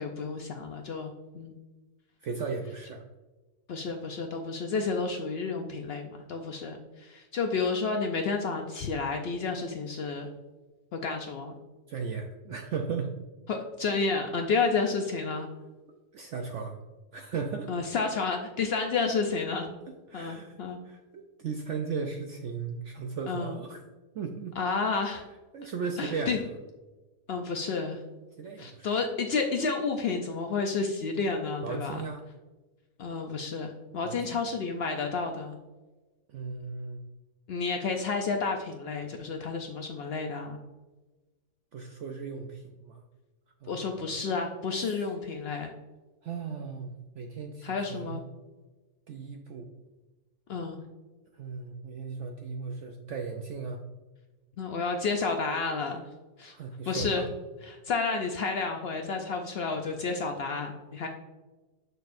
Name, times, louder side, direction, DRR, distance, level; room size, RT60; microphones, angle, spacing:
voice 1, 0.0-1.6 3.7-10.3 10.9-11.6 13.5-15.5 17.7-19.7 20.1-20.8 23.3-23.6 24.6-25.2 26.0-26.4 27.3-28.0 28.6-32.0 33.0-35.6 37.5-40.6 43.7-45.7 47.6-48.2 50.5-50.8 54.6-56.0 56.4-56.5 56.9-57.3 57.6-61.1, left 4 dB, 90° left, 3 dB, 0.5 m, -31 dB
voice 2, 2.2-3.0 11.9-13.2 15.9-16.8 17.1-17.7 20.1-20.6 20.8-23.8 24.1-24.5 25.5-26.5 28.4-28.9 31.6-32.3 34.0-34.4 36.3-37.0 41.7-43.0 43.6-44.3 44.8-45.1 46.2-48.2 49.1-49.7 51.3-53.8 56.5-57.3, right 5 dB, 70° right, 3 dB, 0.7 m, -36 dB
6.5 x 6.5 x 2.5 m, 1.2 s
omnidirectional pair, 1.7 m